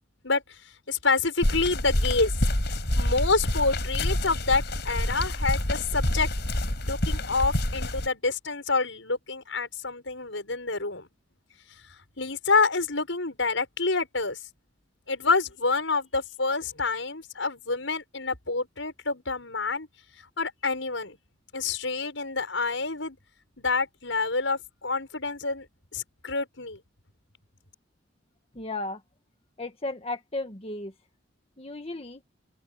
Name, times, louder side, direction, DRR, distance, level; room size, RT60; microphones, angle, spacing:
voice 1, 0.2-0.6 0.9-2.3 3.0-6.3 6.9-11.1 12.2-14.4 15.1-19.9 20.4-21.2 21.5-23.2 23.6-25.7 25.9-26.8, left 4 dB, 85° left, 6.3 m, -27 dB
sound 1, 1.4-8.1, left 1 dB, 60° left, 5.2 m, -27 dB
voice 2, 28.5-29.0 29.6-30.9 31.6-32.2, left 2 dB, 30° left, 1.6 m, -34 dB
open air
head